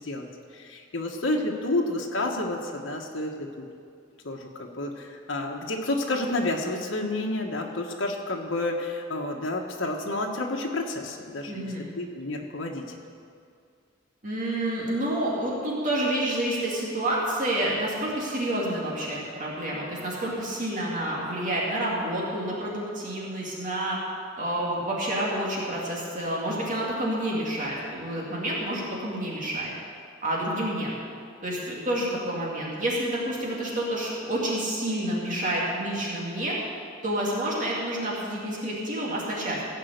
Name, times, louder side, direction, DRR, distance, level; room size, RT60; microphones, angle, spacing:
voice 1, 0.0-3.6 4.2-12.8, left 2 dB, 75° left, 0 dB, 1.3 m, -30 dB
voice 2, 11.5-11.9 14.2-24.0 24.4-29.7 30.2-30.9 31.4-36.6 37.0-39.6, right 1 dB, 40° right, -4 dB, 2.4 m, -29 dB
16.5 x 5.6 x 8.0 m, 2.3 s
head